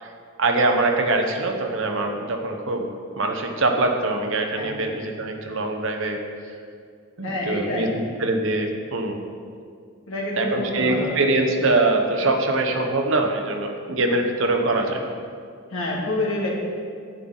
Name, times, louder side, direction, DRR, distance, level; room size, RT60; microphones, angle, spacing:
voice 1, 0.4-6.2 7.2-9.2 10.4-15.0, right 2 dB, 60° right, 4 dB, 0.9 m, -23 dB
voice 2, 7.2-8.0 10.1-11.4 14.7-15.0 15.7-16.5, left 1 dB, 65° left, -4 dB, 2.2 m, -28 dB
11.0 x 8.8 x 4.0 m, 2.2 s
head